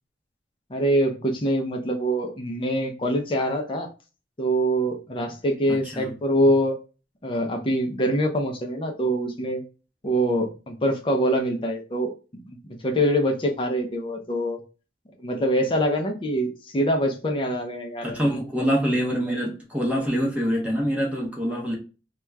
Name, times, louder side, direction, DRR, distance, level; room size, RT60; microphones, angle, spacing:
voice 1, 0.7-3.9 4.4-6.8 7.2-9.6 10.0-12.1 12.5-14.6 15.2-18.4, equal, 30° left, 0.5 m, -24 dB
voice 2, 5.7-6.1 18.0-21.7, equal, 10° right, 0.7 m, -25 dB
2.9 x 2.2 x 3.2 m
head